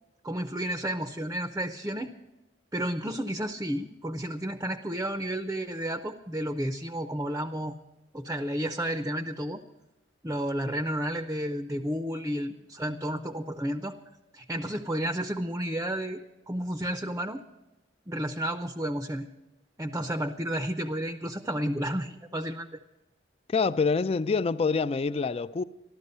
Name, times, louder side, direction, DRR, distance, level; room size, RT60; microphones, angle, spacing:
voice 1, 0.2-2.2 2.7-7.8 8.1-9.6 10.2-14.0 14.3-16.2 16.5-17.4 18.1-19.3 19.8-22.8, right 1 dB, 15° right, 0.6 m, -31 dB
voice 2, 23.5-25.6, left 4 dB, 35° left, 0.3 m, -26 dB
14.0 x 12.5 x 5.4 m
head